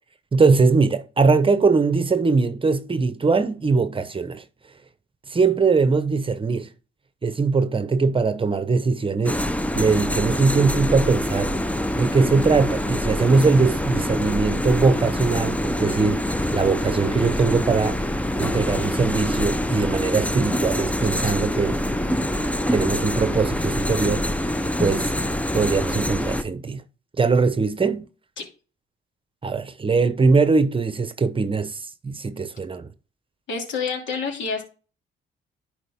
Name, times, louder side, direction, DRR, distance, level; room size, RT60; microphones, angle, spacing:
voice 1, 0.3-4.4 5.3-6.7 7.2-9.4 9.7-11.6 12.0-18.0 18.4-21.8 22.7-24.3 24.8-25.1 25.5-26.8 27.2-28.0 29.4-32.9, right 4 dB, 25° right, 0.9 m, -21 dB
sound 1, 9.2-26.4, left 1 dB, 5° left, 0.7 m, -25 dB
voice 2, 33.5-34.6, left 5 dB, 70° left, 2.9 m, -28 dB
11.0 x 5.0 x 3.6 m
cardioid pair, 90°, 20 cm